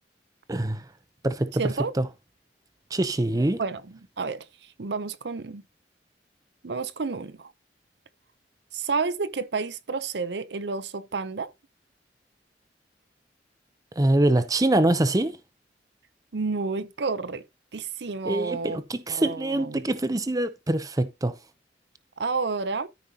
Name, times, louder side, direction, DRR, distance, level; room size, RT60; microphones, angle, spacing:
voice 1, 0.5-0.8 1.2-1.7 2.0-2.1 2.9-3.6 14.0-15.4 18.2-21.4, right 1 dB, 20° right, 0.6 m, -24 dB
voice 2, 1.6-1.9 3.6-3.8 4.2-5.6 6.6-7.5 8.7-11.5 16.3-17.4 17.7-18.8 19.1-19.8 22.2-22.9, right 4 dB, 70° right, 0.6 m, -30 dB
13.0 x 5.3 x 2.8 m
head